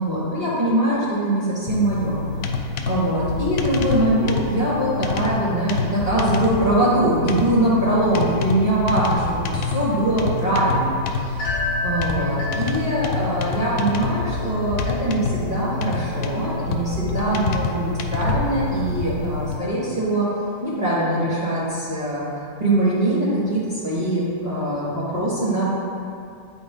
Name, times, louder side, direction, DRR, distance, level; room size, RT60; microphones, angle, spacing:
voice 1, 0.0-2.2 2.5-2.6 2.8-11.0 11.8-20.3 20.6-22.2 22.6-25.6, right 1 dB, 35° right, -12 dB, 1.5 m, -22 dB
sound 1, 1.7-19.6, left 4 dB, 85° left, 0.9 m, -27 dB
sound 2, 9.4-20.9, left 2 dB, 40° left, 1.6 m, -35 dB
9.6 x 4.3 x 3.5 m, 2.5 s
omnidirectional pair, 1.2 m